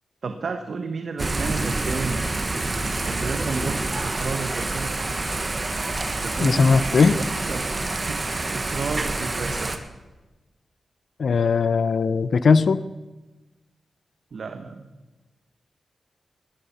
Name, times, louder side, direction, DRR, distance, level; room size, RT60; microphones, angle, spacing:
voice 1, 0.2-2.2 3.1-4.9 6.1-9.8 14.3-14.9, right 4 dB, 65° right, 7 dB, 1.1 m, -32 dB
Thunder / Rain, 1.2-9.8, right 2 dB, 30° right, 1.4 m, -27 dB
voice 2, 6.4-7.1 11.2-12.8, left 5 dB, 65° left, 15 dB, 0.6 m, -19 dB
19.0 x 13.0 x 5.7 m, 1.1 s
wide cardioid pair, 110°, 0 cm